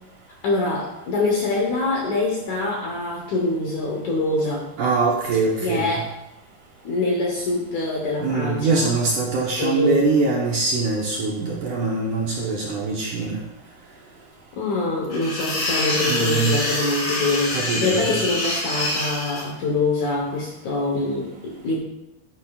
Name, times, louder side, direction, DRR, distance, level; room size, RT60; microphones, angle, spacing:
voice 1, 0.4-4.7 5.6-6.1 6.8-8.8 9.6-10.0 14.6-21.8, left 2 dB, 65° left, -1 dB, 1.9 m, -24 dB
voice 2, 4.8-6.0 8.2-13.4 15.9-16.6 17.5-18.2, right 4 dB, 70° right, -3 dB, 2.0 m, -23 dB
sound 1, 15.1-19.4, left 1 dB, 45° left, 4.1 m, -26 dB
10.5 x 10.0 x 2.4 m, 0.89 s
omnidirectional pair, 4.7 m